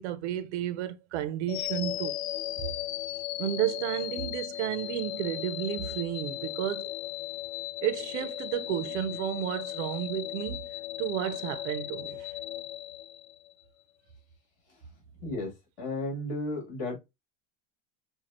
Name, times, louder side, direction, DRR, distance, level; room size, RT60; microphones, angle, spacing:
voice 1, 0.0-2.2 3.4-6.9 7.8-10.7 11.0-12.3, right 11 dB, 75° right, 0.7 m, -32 dB
sound 1, 1.5-13.6, left 14 dB, 60° left, 0.5 m, -36 dB
voice 2, 15.2-17.0, left 2 dB, 45° left, 2.6 m, -34 dB
6.4 x 2.3 x 3.0 m
supercardioid pair, 175°, 35 cm